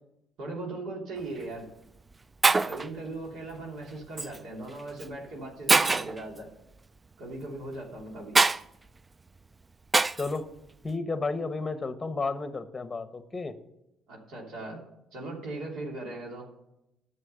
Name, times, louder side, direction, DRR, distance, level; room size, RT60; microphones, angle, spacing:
voice 1, 0.4-1.6 2.6-6.5 7.2-8.4 14.1-14.8 15.1-16.5, right 2 dB, 70° right, -1 dB, 3.0 m, -38 dB
Shatter, 1.2-1.4 2.1-2.2 2.4-2.9 4.2-4.4 5.0-5.1 5.7-6.2 8.3-8.6 9.9-10.3, right 3 dB, 20° right, 0.3 m, -23 dB
voice 2, 10.1-10.5 10.8-13.5, left 3 dB, 20° left, 10 dB, 0.9 m, -32 dB
11.0 x 6.8 x 6.8 m, 0.88 s
cardioid pair, 105°, 0 cm